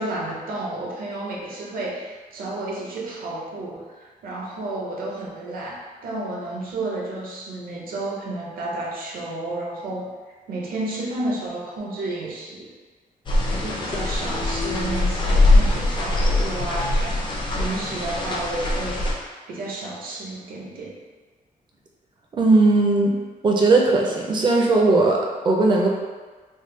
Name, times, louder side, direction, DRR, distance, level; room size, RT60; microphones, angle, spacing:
voice 1, 0.0-10.2 10.5-12.7 13.5-21.0, right 2 dB, 75° right, -3 dB, 0.7 m, -31 dB
sound 1, 13.3-19.1, left 2 dB, 30° left, 0.4 m, -22 dB
voice 2, 22.3-23.2 23.4-25.9, right 2 dB, 30° right, -1 dB, 0.4 m, -18 dB
3.5 x 2.1 x 3.1 m, 1.4 s
wide cardioid pair, 180°, 15 cm